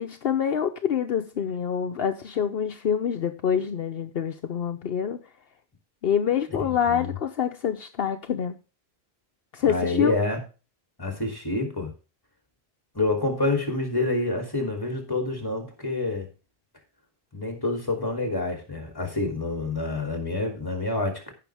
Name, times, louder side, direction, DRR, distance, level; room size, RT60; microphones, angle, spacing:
voice 1, 0.0-5.2 6.0-8.6 9.5-10.1, left 8 dB, 70° left, 1.0 m, -26 dB
voice 2, 9.6-10.4 11.0-11.9 12.9-16.3 17.3-21.3, left 2 dB, 20° left, 3.0 m, -27 dB
15.5 x 6.0 x 3.5 m
omnidirectional pair, 1.1 m